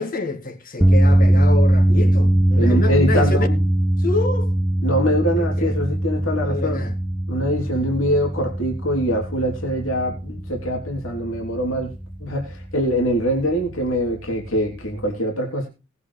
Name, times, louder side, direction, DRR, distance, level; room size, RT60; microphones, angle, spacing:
voice 1, 0.0-3.5 4.0-4.5 5.3-5.7 6.4-6.9, left 3 dB, 45° left, 2.1 m, -27 dB
sound 1, 0.8-15.1, right 1 dB, 5° right, 0.6 m, -21 dB
voice 2, 2.6-3.6 4.8-6.9 7.3-11.9 12.2-15.7, equal, 75° left, 3.4 m, -23 dB
19.5 x 8.3 x 3.3 m
head